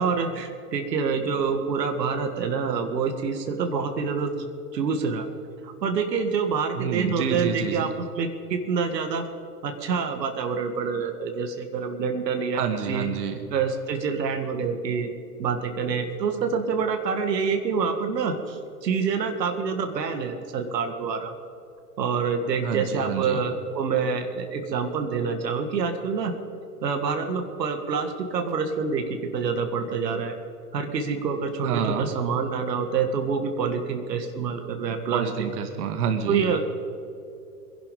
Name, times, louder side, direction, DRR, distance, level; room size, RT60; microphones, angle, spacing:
voice 1, 0.0-5.3 5.6-9.3 9.6-13.1 13.5-15.1 15.4-21.3 22.0-26.3 26.8-30.4 30.7-35.5 36.3-36.6, right 5 dB, 80° right, 5 dB, 2.0 m, -27 dB
voice 2, 6.8-7.9 12.5-13.4 22.6-23.4 31.6-32.1 35.1-36.5, right 7 dB, 65° right, 6 dB, 1.9 m, -28 dB
23.0 x 11.0 x 5.4 m, 2.6 s
hypercardioid pair, 120°, 49 cm